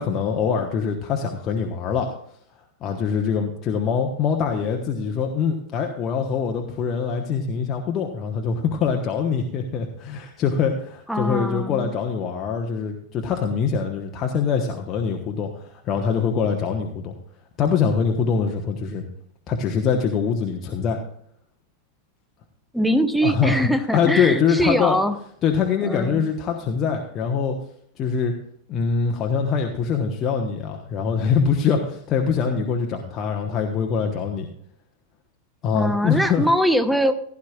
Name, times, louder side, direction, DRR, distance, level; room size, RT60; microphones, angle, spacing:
voice 1, 0.0-2.2 2.8-17.1 17.6-19.0 19.5-21.0 23.2-23.7 23.9-25.0 25.4-27.6 28.0-28.3 28.7-34.5 35.6-36.5, left 6 dB, 30° left, 2 dB, 1.1 m, -23 dB
voice 2, 11.1-11.9 22.7-25.2 25.8-26.3 35.7-37.1, equal, ahead, 9 dB, 0.9 m, -22 dB
16.0 x 11.0 x 2.4 m, 0.66 s
figure-of-eight pair, 90°, 0 cm